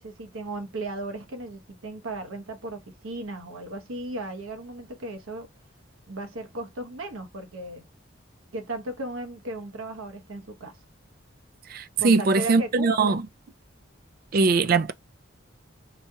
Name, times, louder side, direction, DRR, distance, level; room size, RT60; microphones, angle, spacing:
voice 1, 0.0-5.5 6.1-7.8 8.5-10.8 12.0-13.2, right 2 dB, 85° right, 0.9 m, -36 dB
voice 2, 11.7-13.2 14.3-14.9, right 4 dB, 45° right, 0.3 m, -21 dB
3.1 x 2.7 x 2.2 m
head